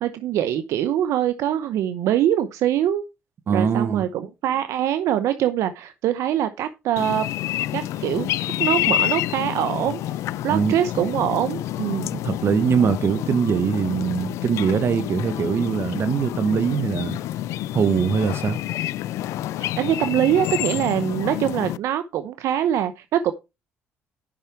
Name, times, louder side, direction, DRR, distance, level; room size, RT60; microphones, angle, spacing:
voice 1, 0.0-3.0 3.5-7.3 7.7-8.3 8.6-10.0 10.4-12.1 19.8-23.3, right 10 dB, 75° right, 0.7 m, -23 dB
voice 2, 3.5-4.0 10.5-10.7 12.1-17.2 17.7-18.6, right 6 dB, 55° right, 1.5 m, -22 dB
sound 1, 7.0-21.8, left 14 dB, 80° left, 0.4 m, -28 dB
10.5 x 5.7 x 4.5 m
supercardioid pair, 70°, 5 cm